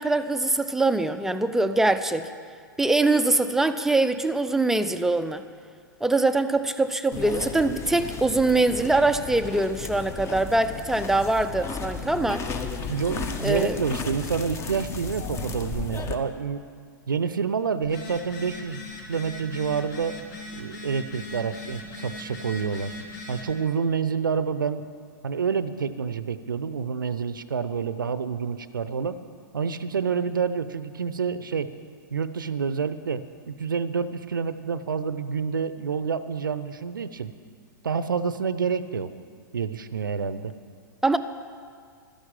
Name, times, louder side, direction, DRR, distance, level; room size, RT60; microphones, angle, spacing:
voice 1, 0.0-2.3 2.8-5.4 6.0-12.4 13.4-13.8 41.0-41.2, right 2 dB, 5° right, 9 dB, 0.6 m, -23 dB
sound 1, 7.1-16.2, left 5 dB, 25° left, 1.2 m, -34 dB
voice 2, 12.9-16.6 17.1-20.2 20.5-22.9 23.3-24.8 25.2-29.2 29.5-31.7 32.1-37.3 37.8-39.1 39.5-40.5, right 6 dB, 70° right, 14 dB, 0.7 m, -28 dB
Telephone, 17.8-23.5, left 2 dB, 55° left, 2.9 m, -39 dB
13.0 x 10.5 x 8.9 m, 2.1 s
figure-of-eight pair, 100°, 11 cm